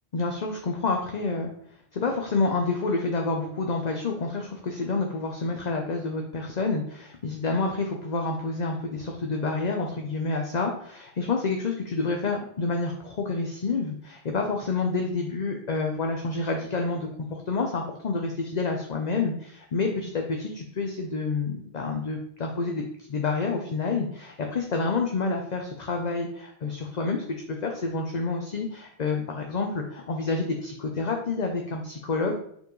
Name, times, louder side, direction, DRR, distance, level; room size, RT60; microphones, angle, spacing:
voice 1, 0.1-1.5 1.9-22.8 23.1-32.3, left 3 dB, 45° left, 2 dB, 0.8 m, -28 dB
6.9 x 5.3 x 3.1 m, 0.68 s
omnidirectional pair, 1.1 m